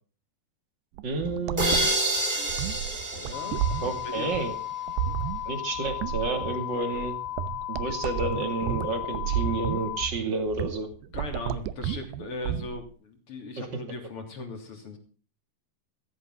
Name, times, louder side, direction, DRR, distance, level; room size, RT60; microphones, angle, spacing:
voice 1, 1.0-1.8 3.8-4.5 5.5-7.1 7.7-10.9 13.6-13.7, right 3 dB, 30° right, 7 dB, 2.4 m, -30 dB
sound 1, 1.0-12.9, right 11 dB, 75° right, 2.8 m, -32 dB
sound 2, 1.6-4.4, right 1 dB, 15° right, 2.1 m, -28 dB
voice 2, 3.1-4.3 11.1-15.0, left 3 dB, 35° left, 5 dB, 3.5 m, -39 dB
sound 3, 3.3-10.1, left 13 dB, 80° left, 3.1 m, -35 dB
15.5 x 15.5 x 3.8 m, 0.39 s
omnidirectional pair, 5.0 m